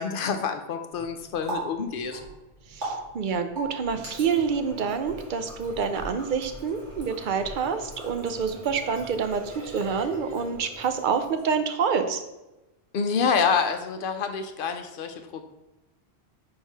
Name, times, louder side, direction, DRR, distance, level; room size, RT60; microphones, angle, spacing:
voice 1, 0.0-2.2 12.9-15.4, left 6 dB, 60° left, 7 dB, 0.7 m, -27 dB
Water tap faucet, 0.9-11.7, right 2 dB, 90° right, 2.3 m, -40 dB
voice 2, 2.7-12.2, right 6 dB, 55° right, 8 dB, 0.6 m, -27 dB
4.7 x 4.6 x 4.5 m, 1.0 s
omnidirectional pair, 1.2 m